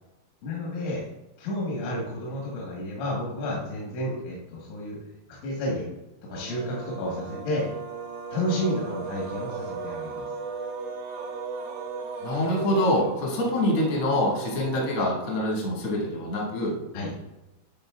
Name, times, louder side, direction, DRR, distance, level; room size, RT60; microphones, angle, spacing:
voice 1, 0.4-1.1 1.4-5.0 5.4-5.9 6.3-7.7 8.3-10.3 16.9-17.1, left 1 dB, 90° left, -3 dB, 3.7 m, -31 dB
sound 1, 6.2-15.6, right 5 dB, 90° right, 2.0 m, -37 dB
voice 2, 12.2-16.7, left 1 dB, 70° left, -3 dB, 1.3 m, -25 dB
11.0 x 4.3 x 2.3 m, 0.99 s
omnidirectional pair, 5.3 m